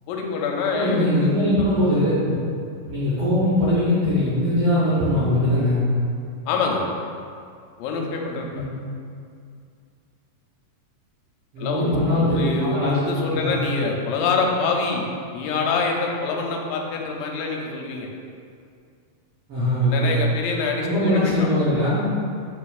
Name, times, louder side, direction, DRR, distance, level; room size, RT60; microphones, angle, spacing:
voice 1, 0.1-1.4 6.5-6.9 7.8-8.6 11.6-15.1 15.3-18.1 19.8-21.5, left 4 dB, 90° left, 0 dB, 2.2 m, -25 dB
voice 2, 0.7-2.1 2.9-5.9 8.5-8.6 11.5-13.5 19.5-20.1 20.8-22.1, left 1 dB, 70° right, -11 dB, 1.4 m, -21 dB
4.9 x 4.4 x 2.3 m, 2.3 s
omnidirectional pair, 3.9 m